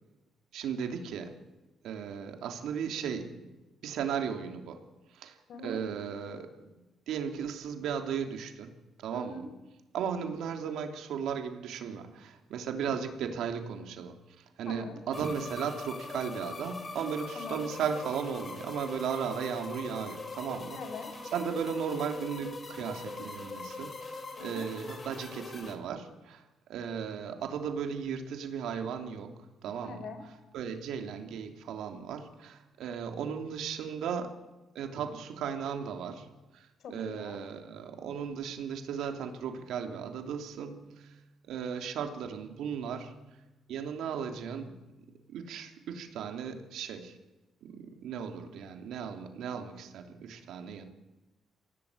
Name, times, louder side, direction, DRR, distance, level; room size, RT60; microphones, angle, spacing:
voice 1, 0.5-1.3 1.8-3.5 3.8-4.8 5.1-5.4 5.6-6.5 6.7-9.5 9.9-20.8 21.3-26.4 26.7-30.1 30.5-34.4 34.7-36.3 36.5-41.1 41.5-43.1 43.7-44.8 45.3-47.2 47.6-50.9, right 7 dB, 80° right, 5 dB, 3.0 m, -36 dB
voice 2, 5.5-5.8 9.1-9.5 14.7-15.0 17.3-17.7 20.8-21.1 24.4-24.7 29.8-30.2 36.8-37.4, left 3 dB, 65° left, 9 dB, 4.6 m, -42 dB
sound 1, 15.1-25.8, left 3 dB, 35° left, 4.0 m, -42 dB
24.0 x 17.0 x 8.6 m, 1.1 s
cardioid pair, 90°, 0 cm